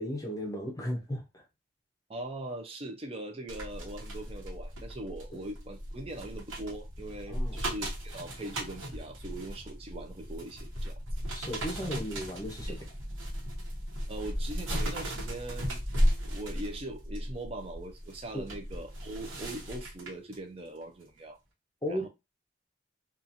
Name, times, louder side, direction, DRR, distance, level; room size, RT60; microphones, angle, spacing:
voice 1, 0.0-1.4 7.3-7.6 11.3-12.8 18.3-18.5 21.8-22.1, equal, 20° left, 0.7 m, -35 dB
voice 2, 2.1-11.0 12.7-12.8 14.1-15.8 16.2-21.4 21.9-22.1, right 1 dB, 30° right, 0.5 m, -41 dB
sound 1, 3.5-20.4 20.8-21.0, equal, 85° right, 1.0 m, -35 dB
2.8 x 2.4 x 2.5 m
head